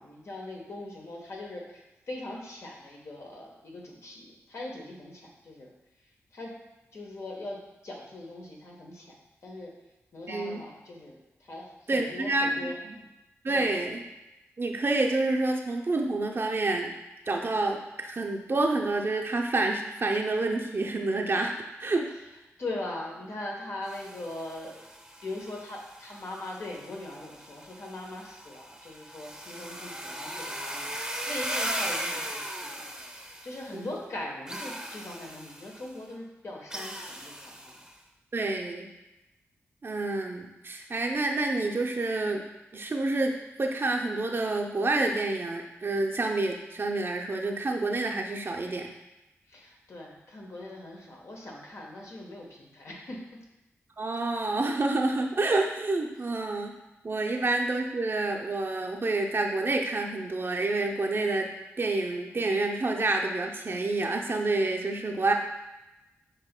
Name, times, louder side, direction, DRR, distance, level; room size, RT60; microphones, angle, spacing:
voice 1, 0.0-5.7 6.3-6.6 6.9-9.1 9.4-9.7 10.1-13.1 13.5-13.7 22.6-24.9 25.2-37.8 49.5-53.2, left 2 dB, 60° left, -1 dB, 1.1 m, -41 dB
voice 2, 10.3-10.6 11.9-13.0 13.4-14.0 14.6-16.9 17.3-21.5 21.8-22.1 33.7-33.9 38.3-38.9 39.8-42.4 42.7-48.9 54.0-56.7 57.0-61.5 61.8-65.3, right 2 dB, 45° right, 2 dB, 0.6 m, -28 dB
sound 1, 23.8-33.9 34.5-35.9 36.7-37.9, right 1 dB, 10° right, 0.7 m, -38 dB
7.1 x 2.8 x 2.2 m, 0.98 s
cardioid pair, 45°, 5 cm